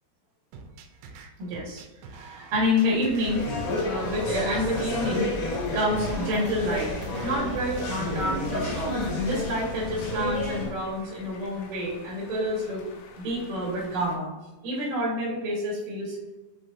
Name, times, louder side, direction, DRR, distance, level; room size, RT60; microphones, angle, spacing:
sound 1, 0.5-8.5, right 4 dB, 85° right, 2.9 m, -46 dB
voice 1, 1.4-1.8 2.1-3.5 3.8-6.9 7.2-8.9 9.3-12.8 13.2-14.3 14.6-16.2, left 1 dB, 55° right, -6 dB, 2.9 m, -28 dB
sound 2, 2.6-14.2, left 4 dB, 90° left, 3.1 m, -48 dB
sound 3, 3.2-10.7, left 2 dB, 70° left, 3.3 m, -30 dB
7.7 x 4.6 x 2.7 m, 1.2 s
omnidirectional pair, 5.3 m